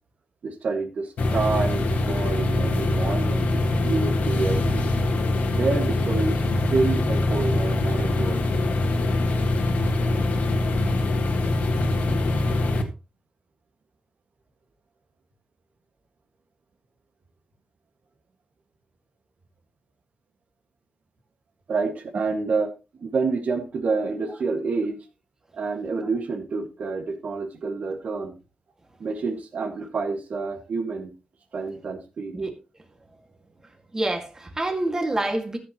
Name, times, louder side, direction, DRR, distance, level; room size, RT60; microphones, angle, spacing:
voice 1, 0.4-4.9 5.5-6.4 6.7-8.5 21.7-22.7 23.0-25.0 25.5-28.4 29.0-31.1 31.5-32.3, right 4 dB, 65° right, 1.8 m, -28 dB
sound 1, 1.2-12.8, left 2 dB, 90° left, 1.7 m, -23 dB
voice 2, 33.6-35.6, right 2 dB, 20° right, 2.0 m, -27 dB
13.5 x 8.2 x 3.0 m
wide cardioid pair, 135°, 3 cm